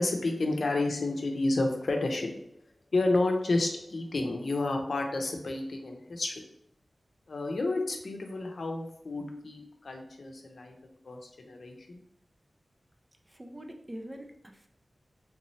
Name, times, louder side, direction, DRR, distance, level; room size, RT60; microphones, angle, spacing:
voice 1, 0.0-2.4 2.9-6.3 7.3-10.8 11.0-12.0, left 2 dB, 75° left, 3 dB, 0.6 m, -30 dB
voice 2, 13.3-14.7, right 1 dB, 20° right, 4 dB, 0.4 m, -44 dB
3.6 x 2.8 x 3.1 m, 0.72 s
wide cardioid pair, 90°, 0 cm